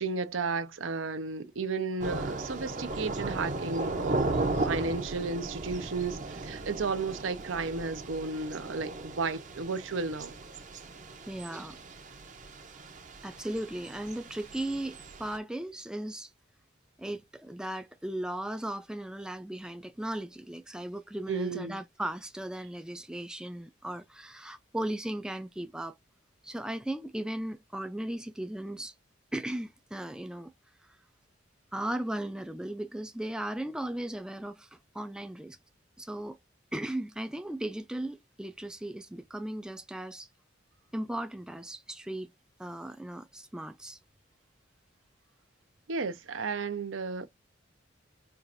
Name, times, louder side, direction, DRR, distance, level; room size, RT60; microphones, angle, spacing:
voice 1, 0.0-10.3 21.3-21.8 45.9-47.3, right 4 dB, 80° right, 0.7 m, -33 dB
Thunder / Rain, 2.0-15.4, right 2 dB, 40° right, 0.7 m, -36 dB
voice 2, 11.3-11.8 13.2-16.3 17.0-26.0 26.4-28.9 29.3-30.5 31.7-35.6 36.0-36.4 36.7-40.3 40.9-42.3 42.6-44.0, right 1 dB, 5° right, 0.3 m, -37 dB
4.6 x 2.5 x 2.5 m
head